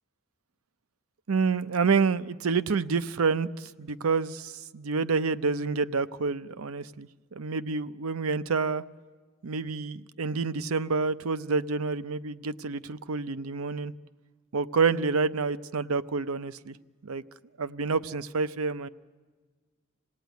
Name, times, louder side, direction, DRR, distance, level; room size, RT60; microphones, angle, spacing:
voice 1, 1.3-8.8 9.4-13.9 14.5-16.8 17.0-17.2 17.6-18.9, right 4 dB, 80° right, 13 dB, 0.6 m, -28 dB
27.0 x 18.0 x 9.3 m, 1.4 s
head